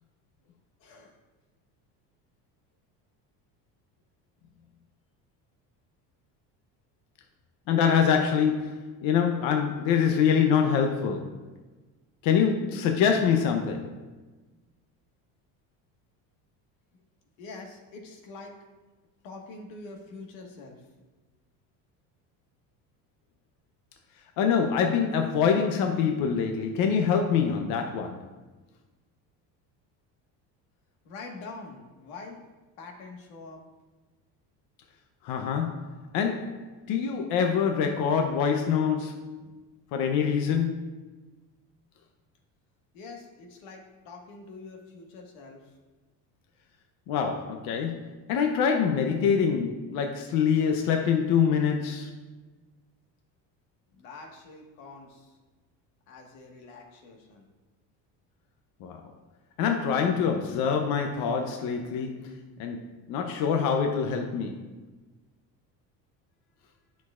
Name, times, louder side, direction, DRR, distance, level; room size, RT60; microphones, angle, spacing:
voice 1, 0.8-1.2 17.4-18.5 19.2-20.8 31.0-32.4 32.8-33.6 42.9-45.7 54.0-55.3 56.1-57.4, left 3 dB, 90° left, 1.6 m, -45 dB
voice 2, 7.7-11.4 12.2-14.0 24.4-28.3 35.2-39.3 39.9-41.0 47.1-52.2 58.8-59.0 59.6-64.7, left 7 dB, 60° left, 0.7 m, -25 dB
10.5 x 6.2 x 2.4 m
cardioid pair, 145°, 38 cm